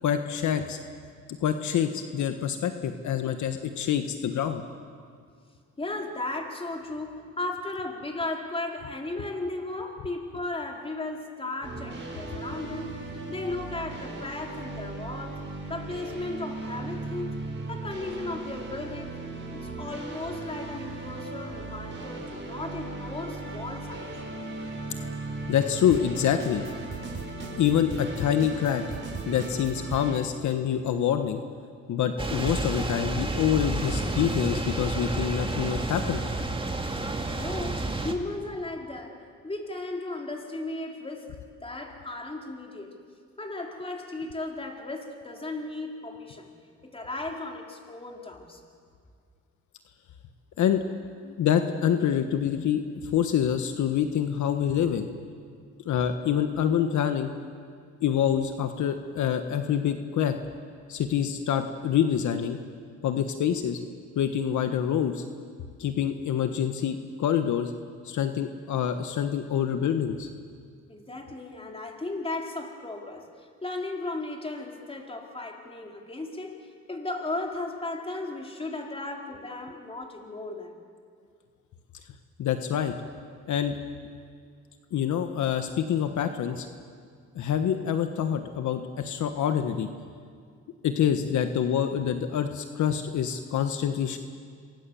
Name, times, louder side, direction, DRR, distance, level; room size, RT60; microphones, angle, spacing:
voice 1, 0.0-0.8 1.4-4.6 25.5-26.7 27.6-28.8 29.2-31.4 31.9-36.2 50.6-50.8 51.2-55.1 55.8-57.3 58.0-60.4 60.9-62.6 63.0-63.8 64.1-65.2 65.8-67.7 68.0-70.3 82.4-82.9 83.5-83.8 84.9-86.7 87.3-89.9 90.8-94.2, left 9 dB, 70° left, 7 dB, 1.4 m, -26 dB
voice 2, 5.8-13.0 13.3-17.4 17.7-19.1 19.5-24.1 37.3-43.0 43.4-46.5 46.8-48.6 70.9-80.8, left 2 dB, 20° left, 1 dB, 4.2 m, -36 dB
sound 1, 11.6-30.2, right 3 dB, 40° right, 5.4 m, -37 dB
sound 2, 32.2-38.1, right 2 dB, 15° right, 2.5 m, -30 dB
28.0 x 23.5 x 7.1 m, 2.1 s
cardioid pair, 90°, 30 cm